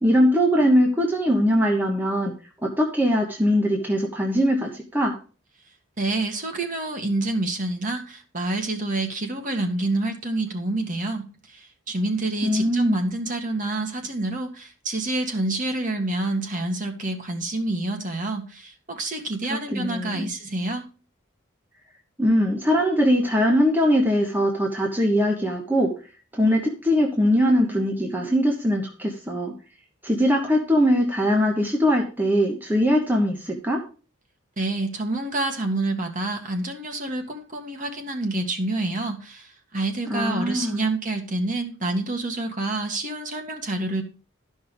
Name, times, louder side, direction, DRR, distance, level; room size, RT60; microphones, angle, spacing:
voice 1, 0.0-2.3 2.6-5.1 12.4-13.1 19.5-20.3 22.2-25.9 26.3-29.5 30.0-33.8 40.1-40.8, equal, 10° right, 1 dB, 1.1 m, -21 dB
voice 2, 6.0-20.9 34.6-44.0, right 2 dB, 40° right, 4 dB, 1.8 m, -28 dB
12.5 x 5.4 x 5.2 m, 0.36 s
head